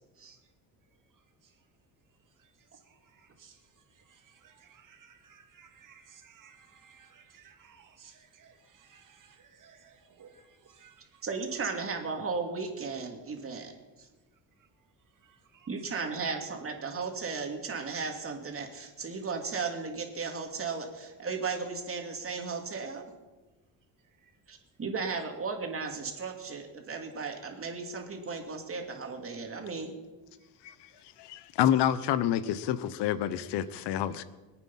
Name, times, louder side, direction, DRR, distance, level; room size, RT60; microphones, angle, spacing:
voice 1, 2.4-11.2 15.2-15.7 24.2-24.3 30.9-31.0, right 7 dB, 50° right, 4 dB, 2.5 m, -59 dB
voice 2, 11.2-13.7 14.0-14.1 15.7-23.1 24.5-29.9, right 4 dB, 35° right, 3 dB, 2.8 m, -35 dB
voice 3, 31.2-34.2, left 11 dB, 90° left, 15 dB, 1.0 m, -28 dB
25.0 x 9.0 x 5.7 m, 1.2 s
cardioid pair, 125°, 40 cm